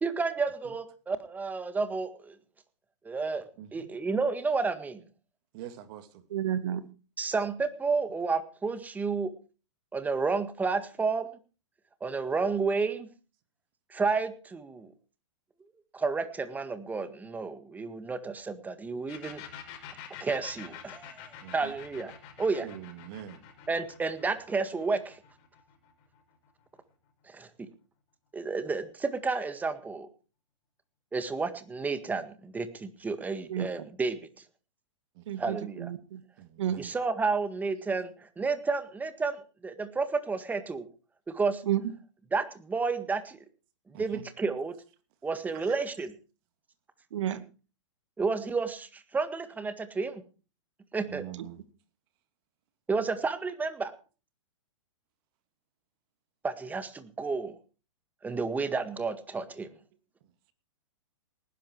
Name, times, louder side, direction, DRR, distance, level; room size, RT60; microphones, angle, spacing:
voice 1, 0.0-2.4 3.1-5.0 7.2-9.3 9.9-11.3 12.0-13.1 13.9-14.9 15.9-19.4 20.2-21.2 21.5-22.1 22.4-22.7 23.7-25.2 27.3-27.7 28.3-30.1 31.1-34.2 35.4-35.9 36.8-40.9 41.3-41.6 42.3-43.4 43.9-44.7 45.2-46.1 48.2-50.2 50.9-51.3 52.9-53.9 56.4-57.6 58.2-59.7, right 4 dB, 10° right, 1.7 m, -31 dB
voice 2, 3.6-3.9 5.5-6.1 21.4-21.7 22.6-23.4 35.2-35.3 36.4-36.9 43.9-44.2 45.5-45.8 51.1-51.6, right 11 dB, 45° right, 2.5 m, -44 dB
voice 3, 6.3-6.8 33.5-33.9 35.3-36.2 36.6-36.8 41.6-41.8 47.1-47.4 51.4-51.5, right 10 dB, 70° right, 2.2 m, -31 dB
sound 1, 19.1-26.6, left 9 dB, 40° left, 5.3 m, -47 dB
19.0 x 11.0 x 4.7 m
hypercardioid pair, 135°, 16 cm